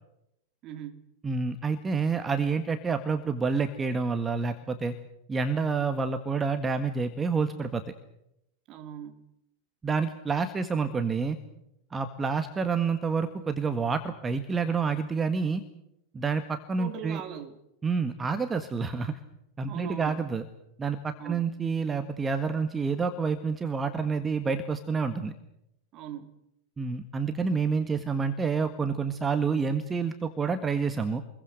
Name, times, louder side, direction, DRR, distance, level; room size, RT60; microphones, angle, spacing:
voice 1, 0.6-1.0 8.7-9.2 16.8-17.6 19.7-20.3 21.2-21.4 25.9-26.3, right 9 dB, 35° right, 3.0 m, -40 dB
voice 2, 1.2-4.9 5.3-7.8 9.8-11.4 11.9-15.6 16.1-17.2 17.8-19.2 19.6-20.4 20.8-25.3 26.8-31.2, right 5 dB, 15° right, 1.7 m, -28 dB
28.0 x 22.0 x 6.5 m
figure-of-eight pair, 90°, 0 cm